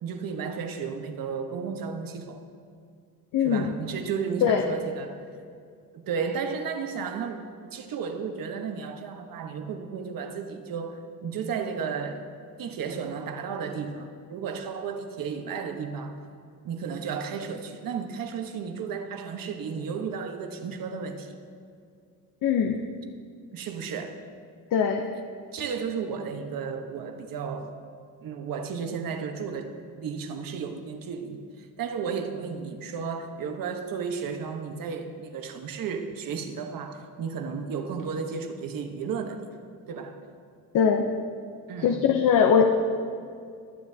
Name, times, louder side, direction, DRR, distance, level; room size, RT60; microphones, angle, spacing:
voice 1, 0.0-2.4 3.4-5.2 5.9-12.2 12.6-16.2 16.6-21.4 23.5-24.2 25.5-27.7 28.2-39.5 39.9-40.2 41.7-42.1, right 6 dB, 75° right, 1.2 m, -33 dB
voice 2, 3.3-3.7 4.4-4.6 22.4-22.8 24.7-25.1 40.7-41.1 41.8-42.7, left 7 dB, 65° left, 0.7 m, -21 dB
21.5 x 9.6 x 2.8 m
cardioid pair, 160°, 34 cm